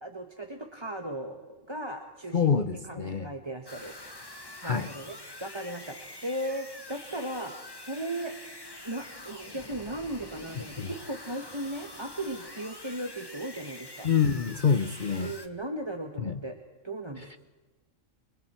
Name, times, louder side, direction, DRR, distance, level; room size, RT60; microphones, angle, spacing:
voice 1, 0.0-3.9 4.6-7.5 7.8-8.3 8.8-14.1 15.2-16.6 16.8-17.4, right 1 dB, 20° right, 4 dB, 1.4 m, -37 dB
voice 2, 2.3-3.3 4.6-4.9 10.8-10.9 14.0-15.3 16.2-16.4 17.2-17.4, left 6 dB, 45° left, 10 dB, 0.9 m, -26 dB
sound 1, 3.7-15.5, left 2 dB, 20° left, 1.6 m, -45 dB
29.5 x 24.5 x 4.5 m, 1.2 s
omnidirectional pair, 1.4 m